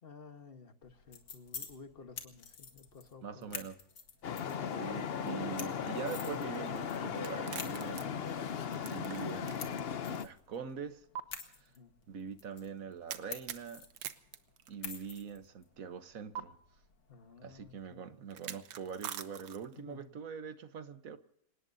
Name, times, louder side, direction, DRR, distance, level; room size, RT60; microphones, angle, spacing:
voice 1, 0.0-3.6 4.5-4.8 11.7-11.9 17.1-18.1 19.8-20.1, left 5 dB, 35° left, 1.4 m, -54 dB
sound 1, 0.8-17.7, left 5 dB, 85° left, 2.5 m, -50 dB
voice 2, 3.2-3.8 4.8-8.5 8.8-9.8 10.1-11.0 11.4-11.7 12.1-13.9 14.7-16.6 17.4-21.2, right 6 dB, 55° right, 1.4 m, -43 dB
Traffic noise roadway noise, 4.2-10.2, left 7 dB, 55° left, 0.7 m, -37 dB
sound 2, 7.2-9.8 10.1-10.2 11.1-11.2 13.1-15.2 16.3-16.4 18.3-19.8, right 9 dB, 85° right, 1.6 m, -44 dB
28.0 x 18.5 x 2.7 m
omnidirectional pair, 1.8 m